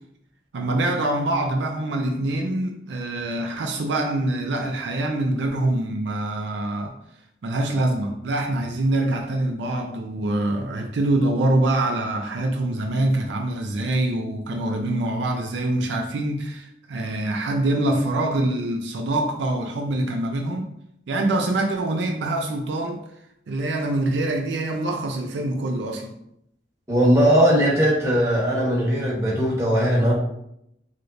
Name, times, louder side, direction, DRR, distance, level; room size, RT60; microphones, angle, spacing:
voice 1, 0.5-7.0 7.4-20.7 21.1-23.0 23.5-26.1, right 1 dB, 75° right, 0.4 m, -24 dB
voice 2, 26.9-30.1, equal, 15° right, 1.0 m, -19 dB
3.2 x 2.9 x 2.5 m
head